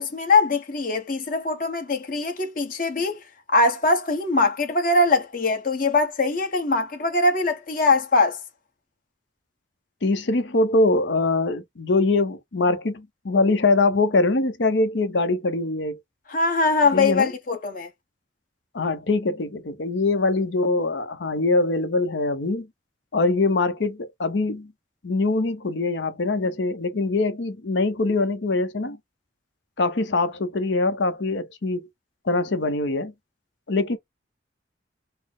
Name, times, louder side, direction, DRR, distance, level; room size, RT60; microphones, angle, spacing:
voice 1, 0.0-3.2 3.5-8.4 16.3-17.9, left 3 dB, 50° left, 1.1 m, -22 dB
voice 2, 10.0-16.0 16.9-17.3 18.7-22.7 23.1-24.7 25.0-29.0 29.8-31.9 32.2-33.1 33.7-34.0, left 3 dB, 75° left, 0.7 m, -23 dB
4.1 x 2.0 x 3.6 m
head